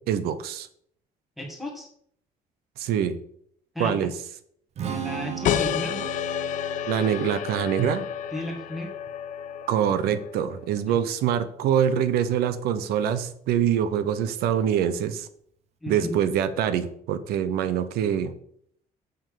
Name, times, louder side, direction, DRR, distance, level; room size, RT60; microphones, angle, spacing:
voice 1, 0.1-0.7 2.8-3.2 3.8-4.1 6.9-8.1 9.7-15.3 15.9-18.3, right 9 dB, 90° right, 12 dB, 0.9 m, -24 dB
voice 2, 1.4-1.9 3.7-4.1 4.9-6.1 8.3-8.9 10.9-11.0 15.8-16.1, left 1 dB, ahead, 1 dB, 2.2 m, -34 dB
Strum, 4.8-11.0, right 8 dB, 45° right, 1.3 m, -39 dB
sound 1, 5.4-10.6, left 10 dB, 55° left, 0.6 m, -30 dB
7.2 x 6.3 x 6.9 m, 0.65 s
cardioid pair, 165°, 16 cm